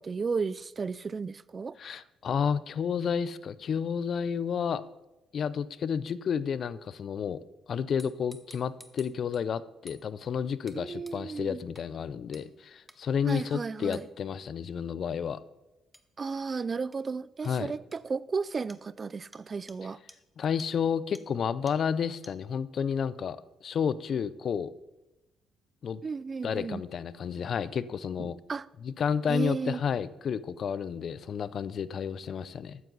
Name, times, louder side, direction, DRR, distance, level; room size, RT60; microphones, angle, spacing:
voice 1, 0.0-2.0 10.7-11.6 13.3-14.0 16.2-20.0 26.0-26.8 28.2-28.7 29.3-29.8, right 5 dB, 35° right, 0.3 m, -34 dB
voice 2, 1.8-4.8 5.3-7.4 7.7-15.4 17.4-17.7 20.4-24.7 25.8-26.0 26.4-28.4 28.8-32.8, left 7 dB, 55° left, 0.5 m, -31 dB
sound 1, 8.0-9.4 9.9-10.0 10.7-10.8 11.1-11.2 11.8-11.9 12.3-12.5 12.9-13.0 13.9-14.1 15.9-16.1 16.9-17.0 17.4-17.5 17.9-18.0 18.7-18.8 19.3-19.4 19.7-19.8 20.1-20.2 20.6-20.7 21.1-21.2 21.7-21.8 22.2-22.3, equal, ahead, 0.9 m, -52 dB
13.0 x 9.6 x 4.0 m
cardioid pair, 90°, 0 cm